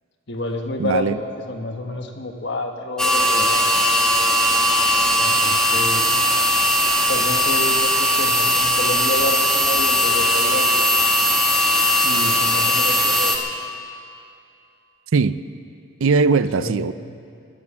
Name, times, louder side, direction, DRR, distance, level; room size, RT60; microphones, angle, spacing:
voice 1, 0.3-3.8 5.2-6.2 7.1-10.9 12.0-13.4 16.5-16.9, left 1 dB, 55° left, 4 dB, 1.4 m, -29 dB
voice 2, 0.8-1.2 15.1-15.4 16.0-16.9, right 4 dB, 75° right, 14 dB, 0.5 m, -19 dB
sound 1, 3.0-13.4, left 1 dB, 5° left, 1.2 m, -18 dB
17.0 x 10.5 x 7.3 m, 2.5 s
head